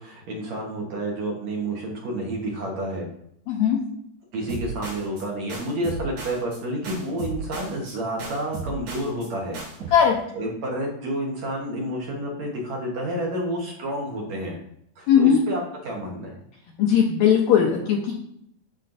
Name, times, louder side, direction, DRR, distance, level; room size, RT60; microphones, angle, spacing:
voice 1, 0.0-3.1 4.3-9.6 10.3-14.6 15.0-16.3, right 1 dB, 60° right, -1 dB, 2.1 m, -29 dB
voice 2, 3.5-3.8 9.9-10.1 15.1-15.4 16.8-18.1, left 8 dB, 75° left, -1 dB, 1.7 m, -18 dB
sound 1, 4.5-5.2 5.5-6.6 6.8-7.9 8.2-9.3 9.5-9.9, right 4 dB, 85° right, 4.8 m, -35 dB
11.5 x 4.4 x 2.6 m, 0.73 s
omnidirectional pair, 4.0 m